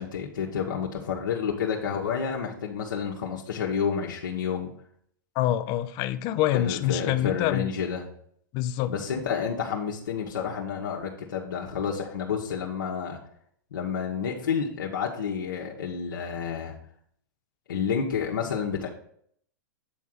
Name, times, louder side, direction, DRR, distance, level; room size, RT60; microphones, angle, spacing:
voice 1, 0.0-4.7 6.5-8.1 8.9-13.2 13.7-16.7 17.7-18.9, left 7 dB, 80° left, 1.3 m, -30 dB
voice 2, 5.4-7.7 8.5-8.9, left 13 dB, 40° left, 0.6 m, -26 dB
8.5 x 3.7 x 6.1 m
hypercardioid pair, 120°, 10 cm